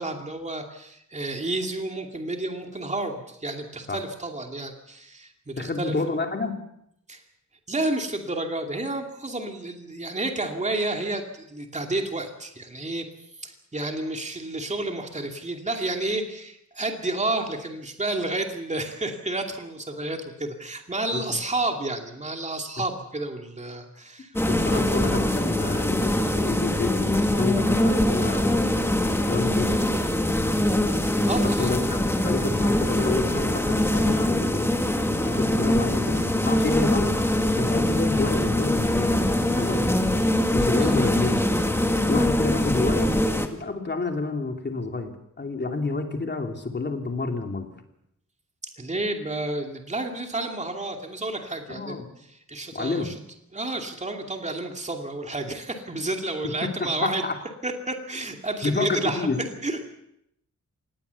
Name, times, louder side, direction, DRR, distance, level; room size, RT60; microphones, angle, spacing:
voice 1, 0.0-6.2 7.1-7.2 7.7-13.1 13.4-25.1 31.3-31.7 40.8-41.0 48.8-53.2 53.5-57.3 57.6-59.3 59.6-59.9, right 2 dB, 25° right, 3 dB, 2.6 m, -31 dB
voice 2, 5.6-6.5 21.1-21.4 24.5-28.6 29.3-29.8 31.4-34.8 35.2-37.1 37.6-39.2 39.6-40.0 40.5-41.4 42.1-43.2 43.5-47.7 51.7-52.1 52.7-53.1 57.0-57.3 58.6-59.4, left 3 dB, 35° left, 4 dB, 2.9 m, -29 dB
sound 1, 24.3-43.5, left 1 dB, 10° left, 1.8 m, -23 dB
26.0 x 19.5 x 7.1 m, 0.77 s
wide cardioid pair, 175°, 30 cm